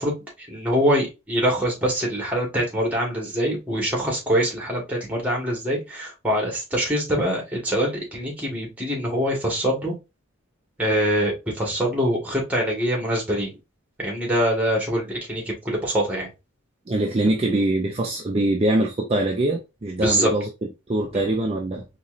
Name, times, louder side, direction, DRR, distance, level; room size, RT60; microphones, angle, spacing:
voice 1, 0.0-9.9 10.8-13.5 14.0-16.3 20.0-20.3, equal, 5° right, 1.6 m, -24 dB
voice 2, 16.9-20.5 20.9-21.8, right 1 dB, 30° right, 0.5 m, -23 dB
4.2 x 3.0 x 2.5 m
head